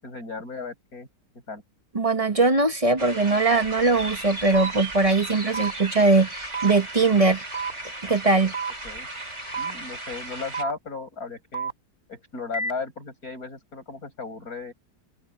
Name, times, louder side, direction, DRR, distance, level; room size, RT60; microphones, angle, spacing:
voice 1, 0.0-1.1 1.5-1.6 8.8-9.1 9.6-11.7 12.1-14.7, left 4 dB, 60° left, 8.1 m, -36 dB
voice 2, 1.9-7.4 8.0-8.5, right 3 dB, 25° right, 1.0 m, -21 dB
sound 1, 3.0-10.6, right 2 dB, 40° right, 7.3 m, -36 dB
sound 2, 4.5-4.7 5.5-5.7 6.5-6.7 7.5-7.7 8.5-8.7 9.5-9.7 10.5-10.7 11.5-11.7 12.5-12.7, right 4 dB, 30° left, 2.6 m, -29 dB
open air
omnidirectional pair, 1.8 m